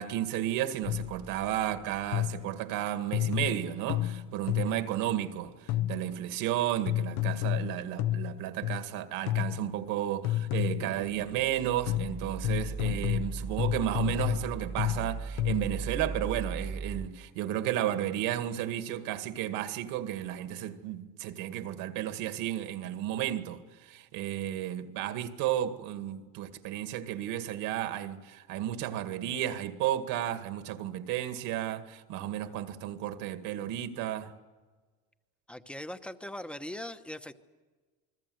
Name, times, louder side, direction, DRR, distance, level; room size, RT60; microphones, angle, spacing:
voice 1, 0.0-34.3, right 12 dB, 65° right, 2.0 m, -33 dB
sound 1, 0.8-2.4 11.0-17.1, right 4 dB, 15° right, 0.7 m, -39 dB
sound 2, 0.9-1.2 2.1-2.6 3.1-4.9 5.7-6.2 6.9-8.9 9.3-9.8 10.2-11.0 11.9-15.8, left 13 dB, 70° left, 1.1 m, -31 dB
voice 2, 35.5-37.3, left 1 dB, 5° left, 1.0 m, -40 dB
28.5 x 21.5 x 7.9 m
cardioid pair, 140°, 36 cm